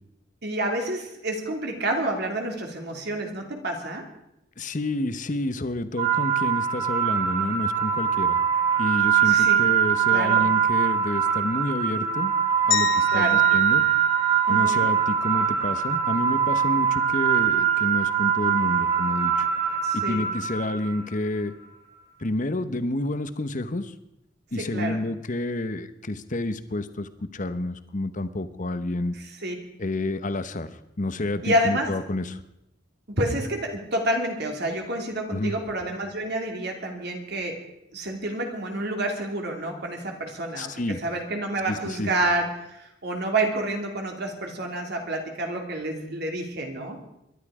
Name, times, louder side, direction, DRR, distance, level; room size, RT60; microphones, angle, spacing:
voice 1, 0.4-4.0 9.2-9.6 10.1-10.5 13.1-13.5 14.5-14.9 19.8-20.3 24.6-25.0 29.1-29.5 31.4-31.9 33.2-37.6 37.9-47.0, right 1 dB, 60° right, 2 dB, 2.8 m, -29 dB
voice 2, 4.6-8.4 8.8-12.3 12.7-13.8 14.5-19.5 19.9-21.5 22.2-23.9 24.5-29.1 29.8-30.7 31.0-32.4 35.3-35.5 40.6-41.0 41.7-42.1, left 2 dB, 45° left, 12 dB, 1.0 m, -29 dB
sound 1, 6.0-21.1, right 8 dB, 35° right, 3.3 m, -23 dB
sound 2, 12.7-15.0, left 9 dB, 85° left, 2.6 m, -31 dB
22.0 x 11.5 x 4.9 m, 0.85 s
head